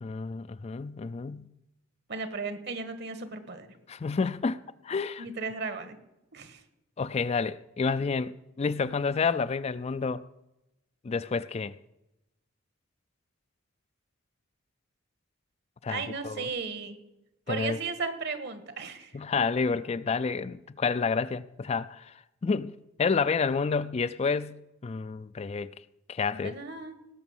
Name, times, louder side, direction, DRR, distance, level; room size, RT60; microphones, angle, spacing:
voice 1, 0.0-1.5 3.9-5.2 7.0-10.2 11.0-11.7 15.8-16.5 17.5-17.8 19.1-22.2 22.4-25.7 26.1-26.6, left 5 dB, 30° left, 0.4 m, -29 dB
voice 2, 2.1-3.7 5.2-6.0 6.3-6.6 15.9-17.0 17.5-19.2 26.3-27.0, right 4 dB, 60° right, 1.5 m, -35 dB
18.0 x 6.2 x 7.2 m
head